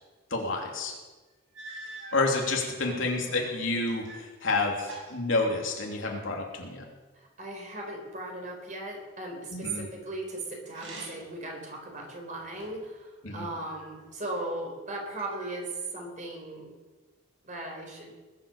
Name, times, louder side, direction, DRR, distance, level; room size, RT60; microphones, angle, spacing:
voice 1, 0.3-1.0 2.1-6.8 9.5-9.9 13.2-13.5, left 3 dB, 80° left, 1 dB, 2.9 m, -29 dB
sound 1, 1.5-2.3 3.1-4.3 4.6-6.1 10.6-11.4 11.9-12.9 13.7-14.5 15.2-15.9, right 2 dB, 85° right, 6.0 m, -46 dB
voice 2, 2.8-3.6 7.1-16.7 17.4-18.1, right 2 dB, 40° right, 1 dB, 4.0 m, -38 dB
20.5 x 8.2 x 7.0 m, 1.2 s
head